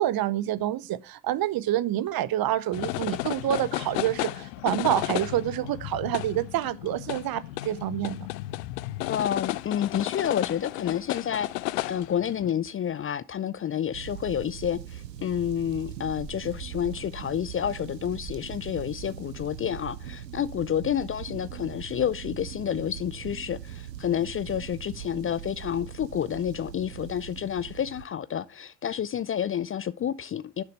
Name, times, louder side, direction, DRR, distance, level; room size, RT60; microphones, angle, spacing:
voice 1, 0.0-8.3, right 13 dB, 45° right, 0.8 m, -27 dB
sound 1, 2.7-12.5, left 18 dB, 75° left, 0.5 m, -33 dB
voice 2, 9.1-11.5 11.8-30.6, left 9 dB, 30° left, 0.5 m, -29 dB
sound 2, 13.9-28.0, right 11 dB, 90° right, 0.6 m, -41 dB
sound 3, 16.5-19.6 19.9-20.3, right 2 dB, 10° right, 1.2 m, -49 dB
10.5 x 6.6 x 3.2 m
figure-of-eight pair, 50°, 49 cm